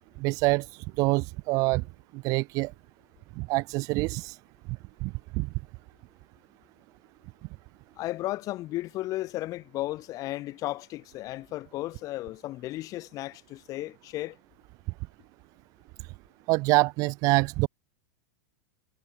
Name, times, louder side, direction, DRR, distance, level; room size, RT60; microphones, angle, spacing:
voice 1, 0.2-0.7 1.0-1.8 2.1-2.7 3.4-4.4 5.0-5.5 16.5-17.7, right 24 dB, 35° right, 0.3 m, -25 dB
voice 2, 8.0-14.4, left 16 dB, 35° left, 3.4 m, -34 dB
supercardioid pair, 150°, 10 cm